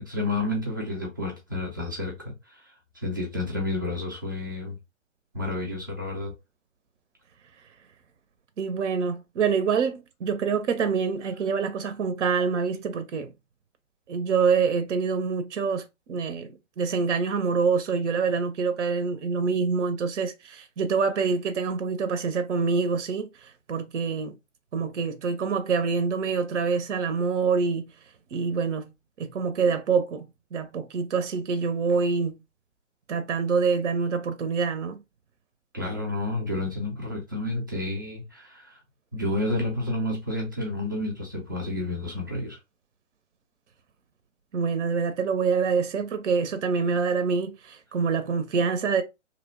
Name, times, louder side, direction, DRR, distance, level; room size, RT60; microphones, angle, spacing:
voice 1, 0.1-4.8 5.3-6.3 35.7-38.8 39.1-42.6, left 2 dB, 20° right, 0.3 m, -30 dB
voice 2, 8.6-13.3 14.1-24.4 24.7-27.9 28.3-28.9 29.2-32.4 33.1-35.0 44.5-49.0, right 5 dB, 65° right, 0.6 m, -26 dB
2.8 x 2.0 x 2.7 m
figure-of-eight pair, 120°, 38 cm